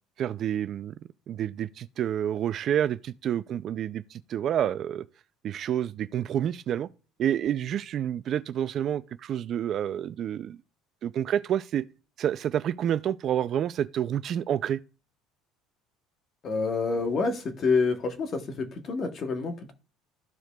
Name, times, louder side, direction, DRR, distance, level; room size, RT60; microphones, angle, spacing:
voice 1, 0.2-0.9 1.3-5.1 5.4-6.9 7.2-10.6 11.0-11.8 12.2-14.8, right 10 dB, 45° right, 0.3 m, -28 dB
voice 2, 16.4-19.7, left 4 dB, 35° left, 1.1 m, -27 dB
13.5 x 4.7 x 2.3 m
cardioid pair, 135°, 0 cm